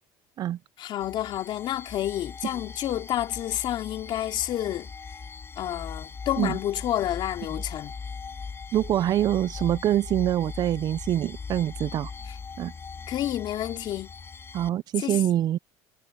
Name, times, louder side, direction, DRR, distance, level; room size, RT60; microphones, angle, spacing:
voice 1, 0.8-4.9 5.6-7.9 12.3-12.4 13.1-14.1 15.0-15.2, left 12 dB, 55° left, 3.2 m, -29 dB
sound 1, 1.0-14.7, left 5 dB, 25° left, 5.2 m, -40 dB
voice 2, 8.7-12.1 12.6-12.7 14.5-15.6, right 12 dB, 45° right, 0.4 m, -25 dB
cardioid pair, 115°, 9 cm